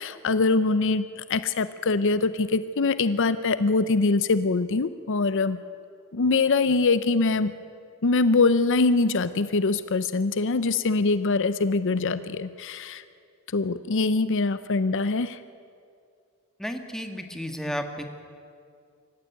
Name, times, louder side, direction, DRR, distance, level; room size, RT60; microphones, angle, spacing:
voice 1, 0.0-5.6 6.1-7.5 8.0-13.0 13.5-15.4, left 3 dB, 60° left, 13 dB, 0.6 m, -23 dB
voice 2, 16.6-18.1, equal, ahead, 5 dB, 1.6 m, -33 dB
25.0 x 15.0 x 9.4 m, 2.3 s
head